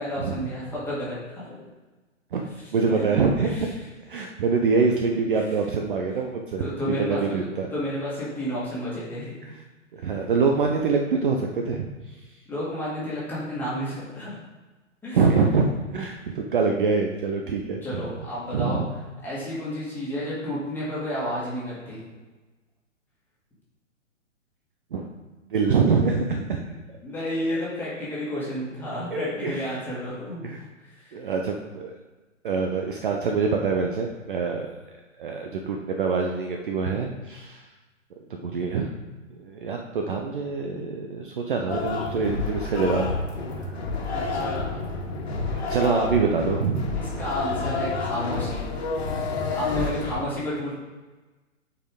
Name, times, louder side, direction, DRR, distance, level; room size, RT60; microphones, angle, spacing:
voice 1, 0.0-1.6 2.6-3.1 3.4-3.7 5.3-5.4 6.6-7.4 7.7-9.4 12.5-14.4 15.0-15.2 17.5-17.6 17.8-18.8 19.2-22.0 26.6-26.7 27.0-30.5 30.9-31.1 44.1-44.7 46.9-48.8 49.5-50.8, equal, 5° left, -9 dB, 2.1 m, -31 dB
voice 2, 2.7-3.7 4.1-7.7 9.4-9.6 9.9-11.9 15.1-15.7 15.9-18.0 18.5-18.9 24.9-25.1 25.5-26.6 29.1-29.8 30.4-30.6 31.1-32.0 32.4-34.7 35.2-37.6 38.3-39.0 39.4-43.1 43.6-43.8 45.5-46.9, right 4 dB, 40° right, 2 dB, 0.6 m, -25 dB
sound 1, 41.7-50.2, left 3 dB, 50° left, 1.7 m, -29 dB
8.8 x 4.6 x 3.6 m, 1.2 s
figure-of-eight pair, 120°, 39 cm